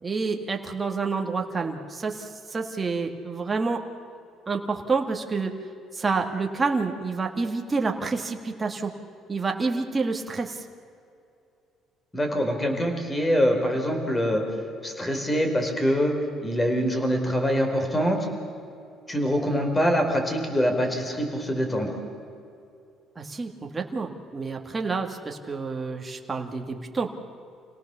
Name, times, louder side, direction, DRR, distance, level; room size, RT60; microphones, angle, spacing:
voice 1, 0.0-3.8 4.5-5.5 5.9-9.0 9.3-10.6 23.2-27.1, right 4 dB, 25° right, 2 dB, 1.9 m, -28 dB
voice 2, 12.1-14.4 14.8-16.1 16.4-18.2 19.1-21.9, equal, 15° left, 4 dB, 4.4 m, -24 dB
27.5 x 18.0 x 7.0 m, 2.6 s
cardioid pair, 100°, 0 cm